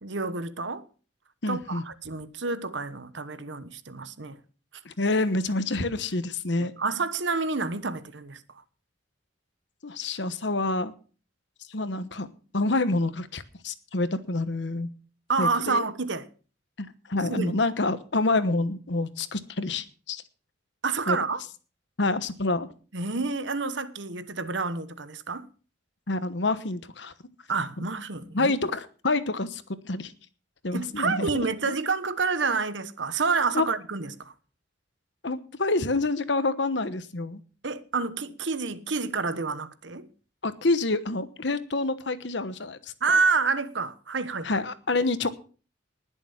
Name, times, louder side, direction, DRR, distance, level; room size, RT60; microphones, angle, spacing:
voice 1, 0.0-0.8 1.5-4.4 6.6-8.4 15.3-16.3 17.3-17.6 20.8-21.4 22.9-25.5 27.5-28.5 30.7-34.3 37.6-40.1 43.0-44.6, right 4 dB, 70° right, 1.1 m, -28 dB
voice 2, 1.4-1.8 4.8-6.7 9.8-10.9 11.7-12.3 12.5-14.9 15.4-15.8 16.8-20.2 21.1-21.2 22.0-22.7 26.1-27.1 28.3-30.1 30.6-31.8 33.5-33.7 35.2-37.4 40.4-43.2 44.4-45.3, left 2 dB, 65° left, 1.1 m, -27 dB
20.0 x 7.0 x 5.7 m
head